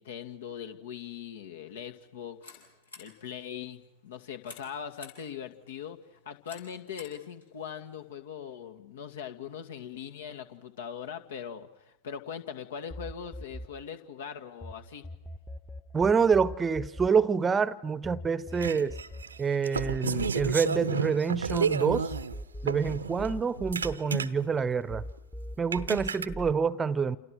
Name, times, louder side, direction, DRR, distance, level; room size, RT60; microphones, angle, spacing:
voice 1, 0.0-2.6 3.0-6.0 6.3-15.1, left 8 dB, 60° left, 2.3 m, -41 dB
sound 1, 1.9-8.1, left 3 dB, 75° left, 8.0 m, -54 dB
sound 2, 12.9-14.7 15.0-21.6 21.9-24.6 24.9-26.5, left 1 dB, 10° left, 1.3 m, -41 dB
voice 2, 15.9-19.0 19.4-22.1 22.6-25.0 25.6-27.2, right 6 dB, 15° right, 1.0 m, -27 dB
sound 3, 18.6-22.4 22.6-24.6 25.2-25.3 25.7-26.3, right 5 dB, 75° right, 0.9 m, -32 dB
29.0 x 29.0 x 6.4 m
figure-of-eight pair, 90°, 0 cm